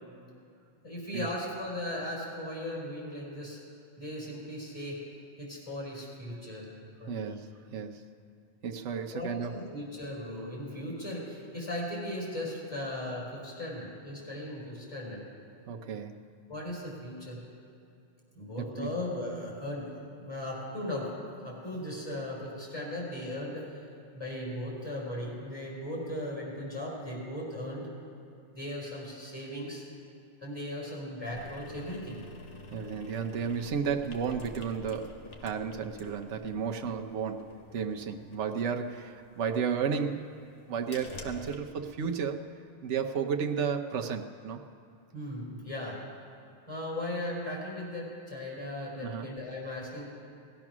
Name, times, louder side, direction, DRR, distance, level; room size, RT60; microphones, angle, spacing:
voice 1, 0.8-3.6 4.0-5.0 5.4-6.7 7.0-7.4 9.1-15.2 16.5-17.4 18.3-21.1 21.4-23.8 24.1-27.9 28.5-29.8 30.4-32.2 45.1-46.0 46.7-50.1, left 1 dB, 20° left, -5 dB, 4.8 m, -37 dB
voice 2, 7.1-8.1 8.6-9.6 15.7-16.2 18.6-19.0 32.7-35.2 35.4-40.2 40.7-42.5 42.8-44.6 49.0-49.3, right 6 dB, 75° right, 4 dB, 1.1 m, -33 dB
sound 1, 31.3-41.6, left 2 dB, 75° left, 1.5 m, -49 dB
18.5 x 12.0 x 6.1 m, 2.5 s
omnidirectional pair, 1.2 m